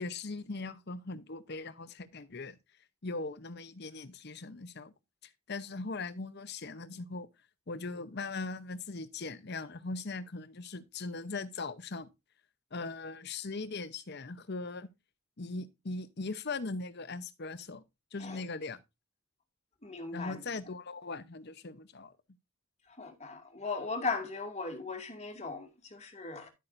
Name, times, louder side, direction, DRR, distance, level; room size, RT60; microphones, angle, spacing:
voice 1, 0.0-2.6 3.0-4.9 5.2-7.3 7.7-12.1 12.7-14.9 15.4-17.8 18.1-18.8 20.1-22.1, left 3 dB, 50° left, 0.8 m, -40 dB
voice 2, 19.8-20.4 22.9-26.5, left 3 dB, 30° left, 2.2 m, -38 dB
11.5 x 8.4 x 2.6 m
head